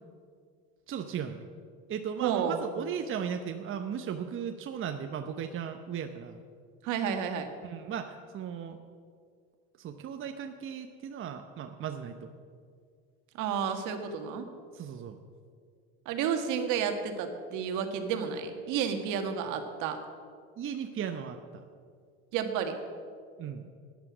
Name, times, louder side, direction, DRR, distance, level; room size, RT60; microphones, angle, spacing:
voice 1, 0.9-1.5 1.9-6.4 7.6-8.8 9.8-12.3 14.7-15.2 20.6-21.6 23.4-23.7, right 8 dB, 35° right, 6 dB, 0.9 m, -36 dB
voice 2, 2.2-2.7 6.8-7.5 13.3-14.5 16.1-20.0 22.3-22.8, right 7 dB, 65° right, 6 dB, 1.7 m, -31 dB
13.5 x 10.5 x 6.2 m, 2.1 s
hypercardioid pair, 85°, 34 cm